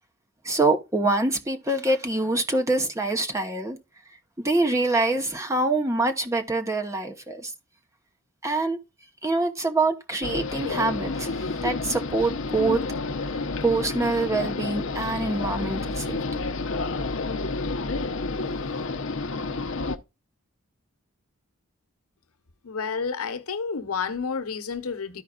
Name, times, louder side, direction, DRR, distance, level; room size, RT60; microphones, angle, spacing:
voice 1, 0.4-3.8 4.4-7.5 8.4-8.8 9.2-12.8 13.3-16.4, right 2 dB, 15° right, 1.0 m, -25 dB
sound 1, 10.2-20.0, left 3 dB, 60° left, 0.7 m, -30 dB
voice 2, 22.6-25.2, left 5 dB, 90° left, 1.0 m, -30 dB
13.5 x 5.0 x 2.4 m
head